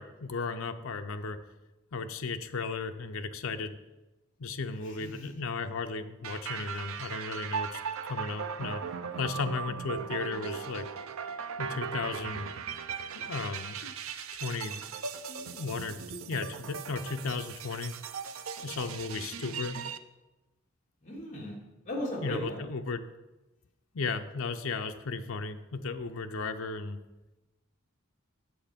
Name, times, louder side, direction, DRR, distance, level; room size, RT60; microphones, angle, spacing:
voice 1, 0.0-1.4 1.9-3.8 4.4-8.8 9.2-10.9 11.6-12.5 13.1-13.9 14.4-14.8 15.3-17.9 18.6-19.8 22.2-23.1 23.9-27.0, left 4 dB, 75° left, 7 dB, 0.6 m, -35 dB
voice 2, 5.0-5.3 21.0-21.6 21.8-22.6, left 1 dB, 35° left, -4 dB, 2.6 m, -36 dB
sound 1, 6.2-20.0, right 6 dB, 80° right, 0.5 m, -38 dB
7.9 x 6.7 x 5.1 m, 1.1 s
head